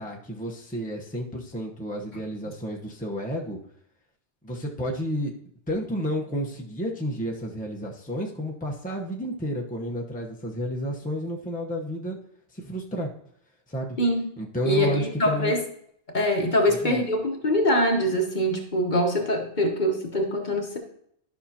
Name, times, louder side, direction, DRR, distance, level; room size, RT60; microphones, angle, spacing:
voice 1, 0.0-3.6 4.4-5.3 5.7-12.2 12.5-13.1 13.7-14.0 14.4-15.5 16.7-17.0, equal, 10° left, -1 dB, 0.9 m, -31 dB
voice 2, 14.0-14.3 14.6-15.6 16.1-20.8, left 1 dB, 45° left, 2 dB, 1.1 m, -24 dB
12.0 x 5.8 x 2.8 m, 0.69 s
omnidirectional pair, 1.2 m